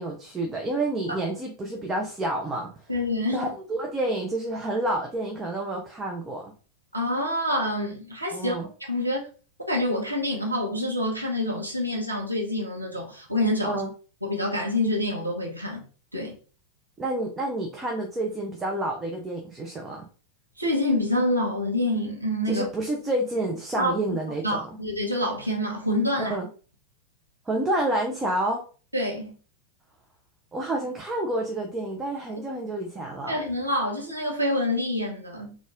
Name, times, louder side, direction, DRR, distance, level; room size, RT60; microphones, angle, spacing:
voice 1, 0.0-2.7 3.3-6.5 8.3-8.7 13.6-13.9 17.0-20.1 22.5-24.7 26.2-26.5 27.5-28.6 30.5-33.4, right 1 dB, 15° right, 0.7 m, -29 dB
voice 2, 2.9-3.5 6.9-8.6 8.9-9.2 9.7-13.8 14.2-15.8 16.1-16.3 20.6-22.6 23.8-24.2 24.4-26.4 28.9-29.3 33.3-35.6, left 1 dB, 85° right, 1.1 m, -27 dB
4.0 x 2.5 x 3.7 m
figure-of-eight pair, 90°, 0 cm